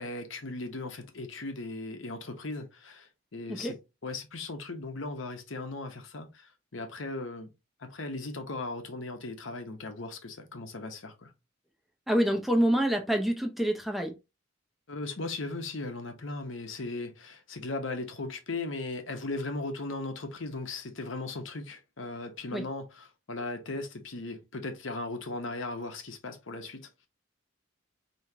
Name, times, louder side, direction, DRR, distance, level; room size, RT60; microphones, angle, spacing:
voice 1, 0.0-7.5 7.8-11.3 14.9-26.9, left 2 dB, 80° left, 1.0 m, -37 dB
voice 2, 12.1-14.1 22.5-22.6, equal, ahead, 0.6 m, -26 dB
4.7 x 3.1 x 2.8 m
head